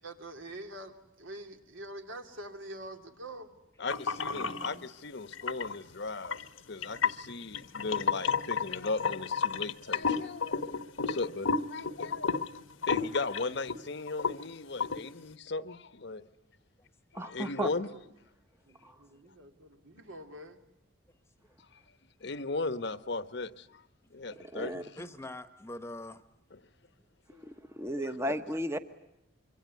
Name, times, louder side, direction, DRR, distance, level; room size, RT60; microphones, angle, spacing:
voice 1, 0.0-3.5 17.2-17.5 17.9-18.1 18.7-20.6, right 1 dB, 75° right, 2.9 m, -46 dB
voice 2, 3.8-6.4 6.7-12.4 12.9-16.2 17.1-17.9 22.2-23.8 24.1-25.0 26.5-26.6 27.3-27.4 27.9-28.3, left 3 dB, 55° left, 1.0 m, -37 dB
sound 1, 3.9-4.7 5.3-5.8 6.2-13.8 14.1-14.4 14.8-15.0, left 5 dB, 80° left, 1.2 m, -31 dB
voice 3, 4.3-4.9 6.8-6.9 7.2-7.3 18.8-19.0 21.4-21.6 24.1-24.2 25.0-26.2, left 1 dB, 15° left, 1.2 m, -45 dB
voice 4, 17.1-17.7 18.8-18.9 24.5-24.8 27.3-28.8, equal, 15° right, 1.1 m, -34 dB
26.0 x 24.0 x 9.5 m
head